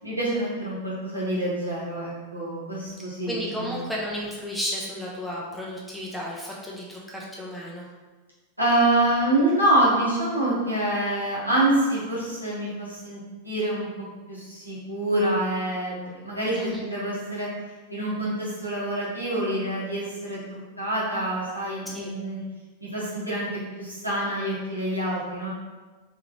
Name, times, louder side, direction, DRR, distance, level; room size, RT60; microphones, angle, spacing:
voice 1, 0.0-3.7 8.6-13.2 13.4-13.9 14.3-17.5 17.9-22.4 22.9-23.5 23.7-25.5, right 1 dB, 90° right, -8 dB, 1.4 m, -26 dB
voice 2, 3.3-7.9 16.5-16.8 21.9-22.1, equal, 5° left, -5 dB, 0.9 m, -33 dB
3.7 x 3.4 x 3.1 m, 1.3 s
figure-of-eight pair, 90°, 0 cm